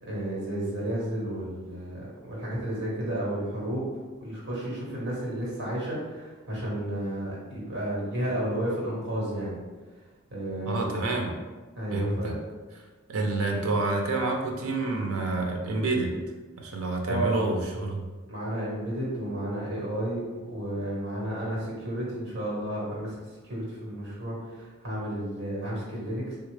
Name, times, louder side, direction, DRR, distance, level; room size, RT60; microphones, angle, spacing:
voice 1, 0.0-3.9 4.2-9.5 10.3-10.8 11.7-12.4 17.1-17.5 18.3-20.2 20.5-23.2 23.4-26.4, right 1 dB, 55° right, -5 dB, 1.2 m, -32 dB
voice 2, 10.6-11.3 11.9-12.4 13.1-16.1 16.6-18.0, right 2 dB, 75° right, 1 dB, 0.5 m, -28 dB
3.3 x 2.3 x 3.2 m, 1.3 s
head